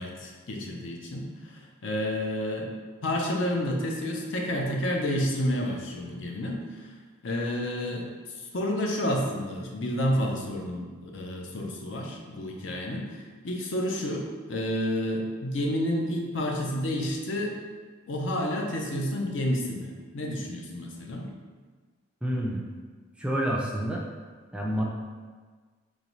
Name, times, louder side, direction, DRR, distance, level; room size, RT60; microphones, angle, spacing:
voice 1, 0.0-2.7 3.0-6.6 7.2-8.1 8.5-17.5 18.1-21.3, left 1 dB, 65° left, 0 dB, 0.6 m, -30 dB
voice 2, 22.2-22.6 23.2-24.0 24.5-24.8, equal, 5° right, -2 dB, 0.3 m, -28 dB
3.8 x 3.0 x 3.1 m, 1.5 s
head